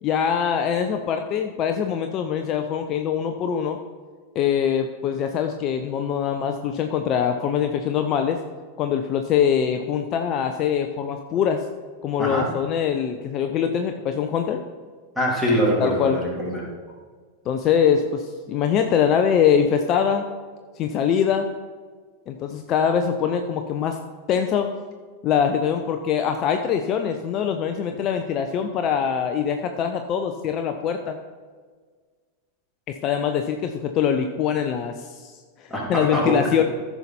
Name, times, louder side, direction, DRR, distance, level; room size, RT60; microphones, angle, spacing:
voice 1, 0.0-3.8 4.3-8.4 8.8-11.6 12.0-14.6 15.8-16.2 17.5-20.2 20.8-21.5 22.3-24.0 24.3-24.7 25.2-31.2 32.9-35.3 35.6-36.6, left 8 dB, 35° left, 6 dB, 0.6 m, -23 dB
voice 2, 12.2-12.5 15.1-16.6 35.7-36.5, equal, 5° right, -4 dB, 3.1 m, -23 dB
14.5 x 5.8 x 4.3 m, 1.5 s
figure-of-eight pair, 90°, 0 cm